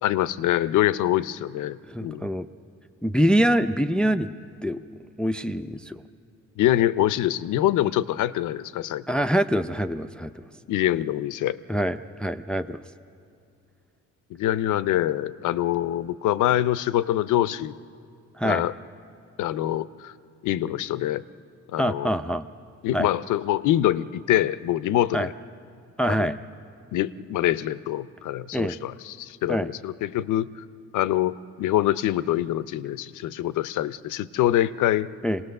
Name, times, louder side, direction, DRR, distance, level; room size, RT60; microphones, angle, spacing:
voice 1, 0.0-2.3 6.6-9.2 10.7-11.6 14.3-17.8 18.4-18.7 19.4-20.1 20.4-21.2 21.7-22.1 22.8-25.3 26.1-26.3 26.9-30.5 30.9-35.1, left 13 dB, 80° left, 16 dB, 0.6 m, -25 dB
voice 2, 1.9-2.5 3.0-4.3 4.6-6.0 9.1-10.3 11.7-12.8 18.4-18.6 21.8-22.4 22.9-23.1 25.1-25.3 26.0-26.4 28.5-28.8 29.5-29.7 35.2-35.4, equal, 5° left, 9 dB, 0.5 m, -25 dB
26.0 x 18.5 x 6.6 m, 2.5 s
cardioid pair, 90°, 30 cm